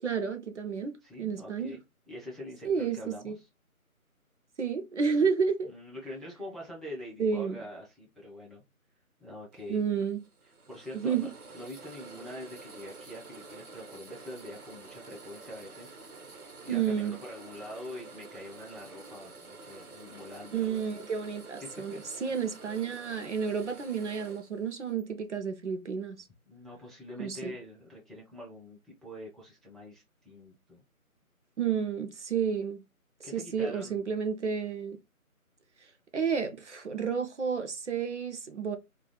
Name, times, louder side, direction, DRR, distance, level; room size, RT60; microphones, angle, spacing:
voice 1, 0.0-1.8 2.6-3.0 3.2-3.4 4.6-5.7 7.2-7.6 9.7-10.2 10.9-11.3 16.7-17.2 20.5-26.2 27.2-27.5 31.6-32.8 33.3-35.0 36.1-38.8, right 6 dB, 55° right, 0.5 m, -31 dB
voice 2, 1.0-1.8 2.1-3.5 5.7-8.6 9.2-10.0 10.4-16.3 16.6-20.9 21.6-22.5 26.5-30.8 33.2-34.0, left 1 dB, ahead, 0.4 m, -45 dB
sound 1, 9.5-25.0, right 3 dB, 85° right, 0.9 m, -49 dB
2.3 x 2.1 x 2.9 m
figure-of-eight pair, 165°, 44 cm